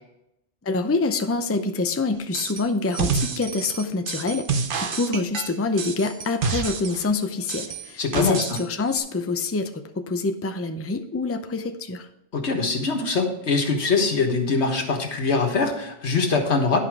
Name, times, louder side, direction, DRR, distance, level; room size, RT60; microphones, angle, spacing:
voice 1, 0.6-12.1, left 3 dB, 20° left, 7 dB, 0.5 m, -26 dB
sound 1, 2.3-2.6 2.9-7.1 7.5-8.6 8.9-9.0, right 5 dB, 55° right, 0.9 m, -28 dB
voice 2, 8.0-8.4 12.3-16.8, left 4 dB, 90° left, 3 dB, 1.6 m, -23 dB
11.0 x 5.5 x 4.7 m, 0.80 s
omnidirectional pair, 1.1 m